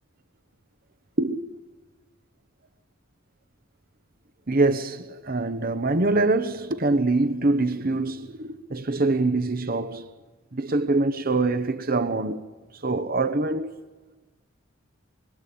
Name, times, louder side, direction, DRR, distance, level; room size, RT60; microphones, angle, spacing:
voice 1, 4.5-10.1 10.5-12.4 12.8-13.8, right 2 dB, 45° right, 1.0 m, -24 dB
24.0 x 22.5 x 8.6 m
head